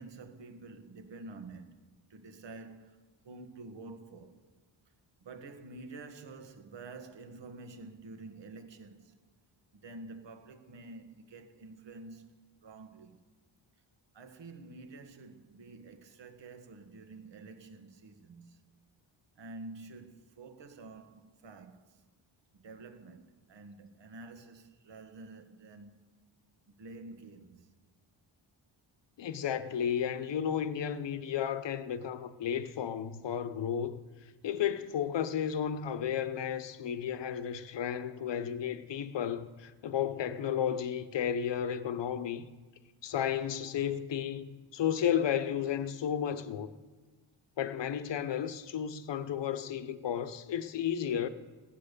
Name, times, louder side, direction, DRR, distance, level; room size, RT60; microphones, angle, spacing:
voice 1, 0.0-4.4 5.2-9.1 9.7-12.3 12.6-13.2 14.1-18.6 19.4-22.0 22.5-26.0 26.7-27.7, right 3 dB, 60° right, 1.5 m, -49 dB
voice 2, 29.2-34.0 34.4-42.4 43.0-46.7 47.6-51.3, left 9 dB, 60° left, 0.9 m, -33 dB
16.0 x 10.0 x 6.7 m
cardioid pair, 100°, 48 cm